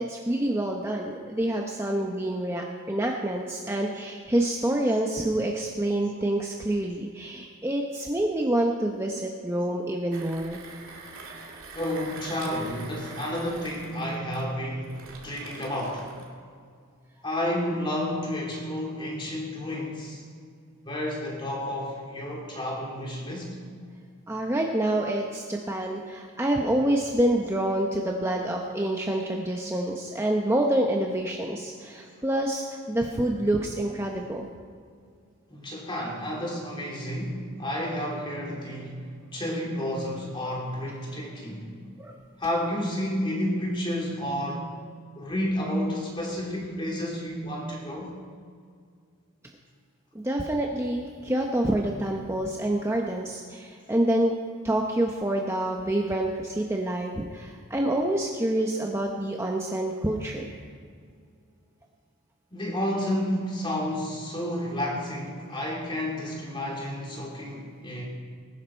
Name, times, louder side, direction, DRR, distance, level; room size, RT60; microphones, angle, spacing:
voice 1, 0.0-10.6 24.3-34.5 40.4-40.5 42.0-42.2 50.1-54.3 54.6-60.6, right 1 dB, 10° right, 1 dB, 0.8 m, -27 dB
Mechanisms, 10.1-16.3, right 3 dB, 65° right, 2.3 m, -44 dB
voice 2, 11.7-16.1 17.2-20.2 20.8-23.6 35.5-41.7 42.4-44.7 45.2-48.2 62.5-68.0, left 1 dB, 20° left, -2 dB, 2.9 m, -31 dB
20.0 x 11.5 x 4.4 m, 2.2 s
head